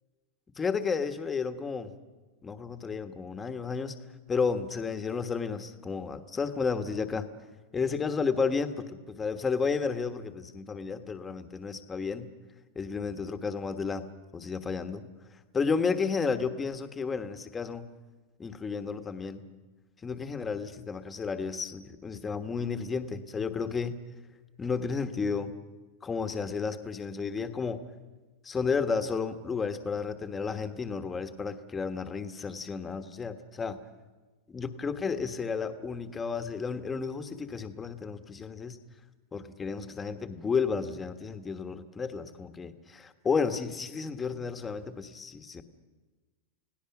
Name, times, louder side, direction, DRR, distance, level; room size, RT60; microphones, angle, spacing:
voice 1, 0.6-1.9 2.4-3.9 4.3-7.3 7.7-12.3 12.7-14.0 14.3-15.0 15.5-17.8 18.4-19.4 20.0-24.0 24.6-25.5 26.0-27.8 28.4-33.8 34.5-38.8 39.3-45.6, left 5 dB, 15° left, 9 dB, 1.4 m, -32 dB
30.0 x 17.5 x 6.0 m, 1.3 s
supercardioid pair, 145°, 0 cm